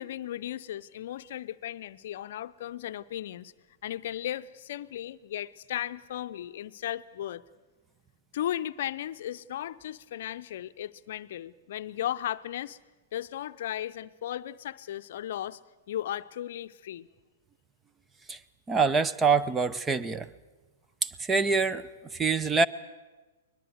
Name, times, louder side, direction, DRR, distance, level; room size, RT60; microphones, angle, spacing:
voice 1, 0.0-3.5 3.8-7.4 8.3-12.8 13.1-15.6 15.9-17.1, left 12 dB, 60° left, 12 dB, 0.7 m, -36 dB
voice 2, 18.7-20.3 21.0-22.7, right 4 dB, 15° right, 15 dB, 0.8 m, -25 dB
21.5 x 21.0 x 8.0 m, 1.2 s
hypercardioid pair, 115°, 0 cm